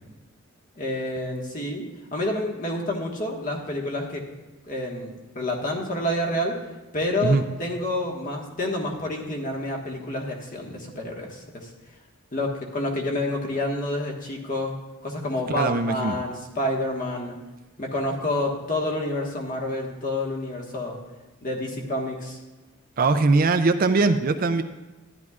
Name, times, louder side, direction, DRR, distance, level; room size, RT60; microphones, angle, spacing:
voice 1, 0.7-1.8 2.1-4.3 4.7-6.6 6.9-11.7 12.3-14.8 15.0-17.4 17.8-21.0 21.4-22.4, left 1 dB, 40° left, -1 dB, 1.5 m, -28 dB
voice 2, 15.5-16.2 23.0-24.6, right 3 dB, 40° right, 9 dB, 0.4 m, -21 dB
13.0 x 10.5 x 2.4 m, 1.1 s
head